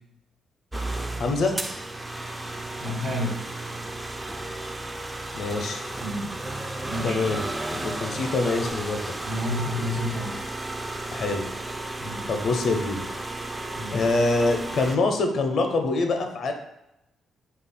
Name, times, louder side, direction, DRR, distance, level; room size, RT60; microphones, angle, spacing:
sound 1, 0.7-15.0, right 2 dB, 15° right, 0.3 m, -33 dB
voice 1, 1.2-1.6 5.3-5.8 7.0-9.1 11.1-11.5 12.3-13.0 13.9-16.5, left 3 dB, 60° left, 5 dB, 0.5 m, -25 dB
voice 2, 2.8-3.4 6.0-6.3 6.9-7.2 8.1-8.2 9.2-10.4 12.0-12.3 13.8-14.0, left 1 dB, 55° right, 0 dB, 1.2 m, -30 dB
3.2 x 2.3 x 4.1 m, 0.86 s
cardioid pair, 90°, 0 cm